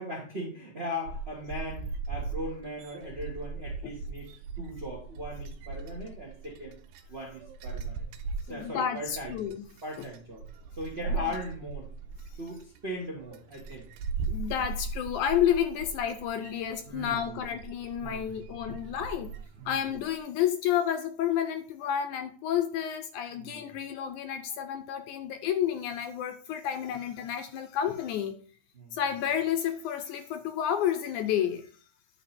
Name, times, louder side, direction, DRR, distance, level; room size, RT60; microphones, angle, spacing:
voice 1, 0.0-4.3 4.6-6.8 7.1-8.1 8.4-9.4 9.8-10.4 10.8-11.9 12.4-13.9 16.8-17.4 18.0-18.3 19.6-19.8 23.3-23.7 28.7-29.0, equal, 60° right, 0.6 m, -39 dB
sound 1, 1.1-20.2, right 4 dB, 80° right, 2.1 m, -39 dB
voice 2, 8.5-9.6 11.1-11.3 14.3-19.3 19.7-28.5 28.9-31.7, left 9 dB, 80° left, 1.9 m, -30 dB
10.0 x 3.7 x 4.2 m
omnidirectional pair, 3.9 m